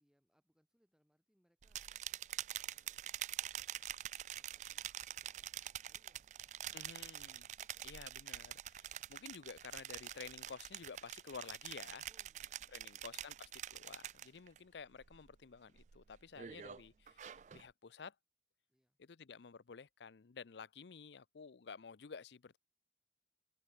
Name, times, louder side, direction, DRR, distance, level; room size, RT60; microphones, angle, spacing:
voice 1, 0.0-1.8 2.5-3.5 4.4-7.9 12.1-13.4 18.7-19.0, equal, 5° right, 5.3 m, -79 dB
sound 1, 1.6-14.6 14.9-15.4 15.8-17.7, right 11 dB, 40° right, 0.3 m, -46 dB
voice 2, 6.7-7.5 7.8-12.1 12.7-18.2 19.0-22.6, left 5 dB, 85° left, 0.6 m, -52 dB
open air
head